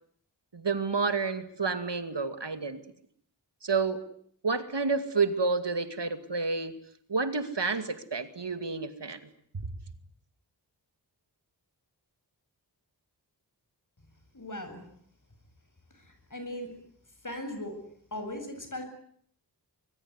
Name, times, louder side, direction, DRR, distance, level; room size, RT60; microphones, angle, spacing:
voice 1, 0.5-2.8 3.6-4.0 4.4-6.7 7.1-9.2 9.5-9.7, right 4 dB, 80° right, 10 dB, 2.5 m, -29 dB
voice 2, 14.3-14.8 15.9-16.7 17.2-17.8 18.1-18.9, left 1 dB, 45° left, 7 dB, 7.9 m, -38 dB
25.0 x 22.5 x 9.8 m, 0.63 s
wide cardioid pair, 50°, 42 cm